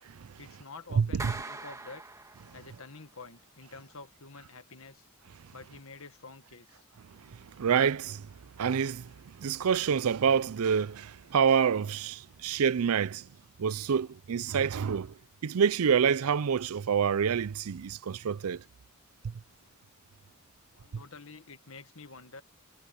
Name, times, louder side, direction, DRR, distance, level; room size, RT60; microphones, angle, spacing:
voice 1, 0.1-2.0 2.5-5.1 5.5-6.9 20.7-22.4, left 3 dB, 65° left, 1.7 m, -48 dB
voice 2, 1.0-1.3 7.6-8.3 8.6-9.1 9.4-13.2 13.6-15.1 15.4-18.6, right 7 dB, 80° right, 0.5 m, -27 dB
Clapping, 1.2-2.8, right 3 dB, 15° right, 1.8 m, -42 dB
head